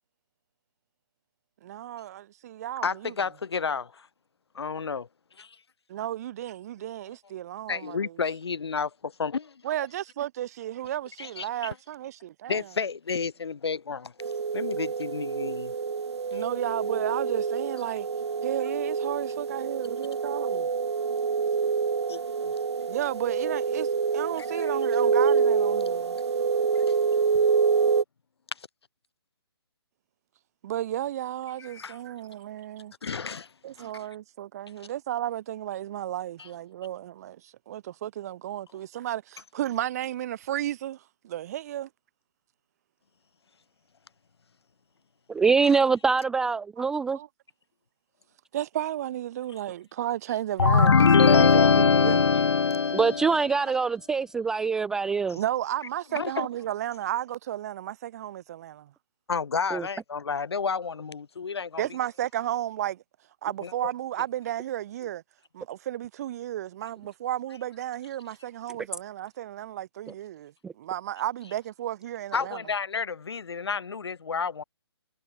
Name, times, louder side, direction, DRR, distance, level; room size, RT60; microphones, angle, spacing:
voice 1, 1.6-3.1 5.9-8.2 9.6-12.7 16.3-18.1 18.4-20.7 22.9-26.2 30.6-32.9 33.6-41.9 46.8-46.9 47.1-47.3 48.5-52.3 55.3-58.9 61.8-63.0 63.4-65.2 65.5-72.6, right 12 dB, 35° right, 1.0 m, -33 dB
voice 2, 2.8-4.1 4.5-5.1 5.4-5.5 7.7-9.5 11.2-11.5 12.5-14.1 14.5-15.7 16.3-16.5 22.1-22.5 24.4-24.6 26.7-27.0 31.6-32.0 33.0-33.5 33.8-33.9 36.4-36.5 56.1-56.5 59.3-61.8 63.6-63.7 72.3-74.6, left 5 dB, 70° left, 2.5 m, -31 dB
sound 1, 14.2-28.0, right 5 dB, 80° right, 0.8 m, -26 dB
voice 3, 45.3-47.2 52.9-55.4 59.7-59.9 70.6-70.7, right 5 dB, 5° right, 0.4 m, -24 dB
sound 2, 50.6-53.4, left 5 dB, 90° left, 0.5 m, -19 dB
hypercardioid pair, 150°, 14 cm